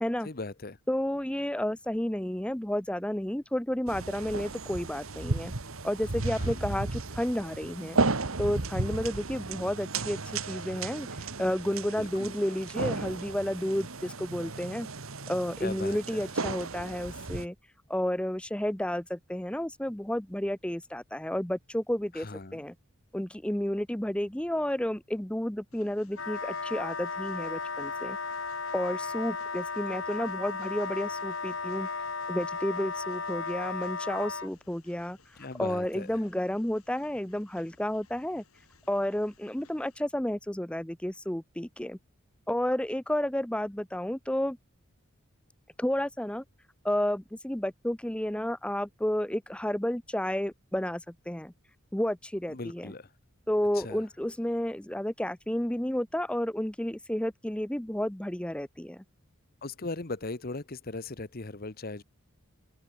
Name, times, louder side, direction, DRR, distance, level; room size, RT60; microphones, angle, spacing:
voice 1, 0.2-0.8 6.3-6.7 11.9-12.3 15.6-16.2 22.1-22.6 35.4-36.2 52.5-53.1 53.7-54.0 59.6-62.0, left 3 dB, 45° left, 1.1 m, -39 dB
voice 2, 0.9-5.5 5.8-8.0 8.4-11.1 11.4-14.9 15.3-17.5 17.9-22.3 22.5-22.7 23.1-28.2 28.7-31.9 32.3-35.2 35.6-38.4 38.9-42.0 42.5-44.6 45.8-46.4 46.8-51.5 51.9-52.9 53.5-59.0, left 1 dB, 5° left, 0.7 m, -31 dB
sound 1, 3.9-17.5, right 3 dB, 75° right, 1.6 m, -34 dB
Train, 25.7-40.0, left 4 dB, 90° left, 7.7 m, -61 dB
Wind instrument woodwind instrument, 26.1-34.5, left 4 dB, 65° left, 3.3 m, -35 dB
open air
head